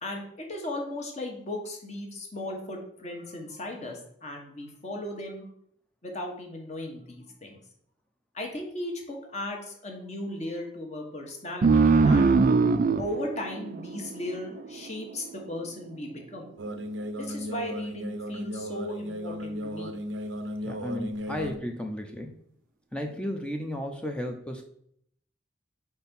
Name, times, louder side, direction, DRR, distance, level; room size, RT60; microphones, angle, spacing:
voice 1, 0.0-5.5 6.0-7.6 8.3-12.4 13.0-16.5 17.2-20.0, left 1 dB, 35° left, 2 dB, 1.3 m, -36 dB
sound 1, 11.6-14.8, right 4 dB, 45° right, 0.3 m, -22 dB
sound 2, 16.6-21.6, equal, 80° right, 0.7 m, -35 dB
voice 2, 20.6-22.3 22.9-24.6, left 1 dB, 5° left, 3 dB, 0.6 m, -34 dB
4.5 x 4.4 x 5.4 m, 0.69 s
head